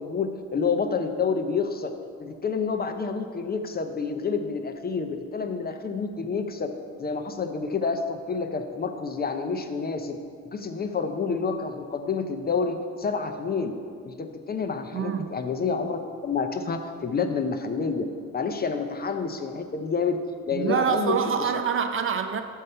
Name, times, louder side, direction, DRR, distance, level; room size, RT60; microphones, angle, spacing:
voice 1, 0.0-1.9 2.2-6.7 7.0-10.2 10.5-13.7 14.0-18.1 18.3-20.2 20.5-21.6, left 5 dB, 30° left, 7 dB, 0.6 m, -28 dB
voice 2, 14.9-15.4 20.5-22.4, right 7 dB, 45° right, 8 dB, 0.5 m, -26 dB
6.4 x 5.5 x 5.5 m, 2.1 s
cardioid pair, 90°, 30 cm